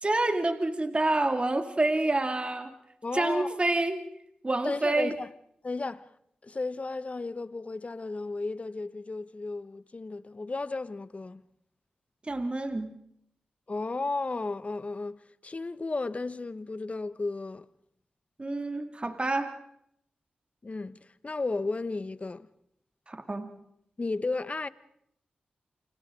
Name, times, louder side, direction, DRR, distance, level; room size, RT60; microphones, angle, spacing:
voice 1, 0.0-2.7 3.1-4.0 4.4-5.1 12.2-12.9 18.4-19.6 23.1-23.5, right 2 dB, 35° right, 2.3 m, -28 dB
voice 2, 3.0-3.6 4.6-5.3 5.6-6.1 6.4-11.4 13.7-17.7 20.6-22.5 24.0-24.7, left 3 dB, 45° left, 1.1 m, -34 dB
29.0 x 27.5 x 3.8 m
cardioid pair, 45°, 3 cm